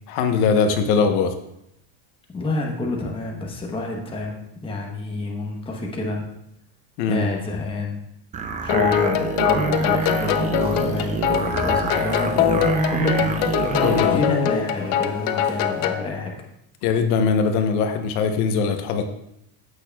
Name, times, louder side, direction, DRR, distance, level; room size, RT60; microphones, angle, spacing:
voice 1, 0.1-1.3 7.0-7.2 13.8-14.2 16.8-19.1, left 5 dB, 70° left, 6 dB, 1.0 m, -21 dB
voice 2, 2.3-6.3 7.0-8.0 8.6-13.4 14.0-16.3, left 2 dB, 10° left, 0 dB, 1.0 m, -28 dB
sound 1, 8.3-14.1, right 4 dB, 15° right, 0.4 m, -26 dB
sound 2, 8.7-16.1, left 9 dB, 50° left, 0.6 m, -23 dB
sound 3, 10.0-15.9, left 2 dB, 30° left, 1.7 m, -38 dB
15.0 x 6.3 x 2.3 m, 0.79 s
cardioid pair, 160°, 45 cm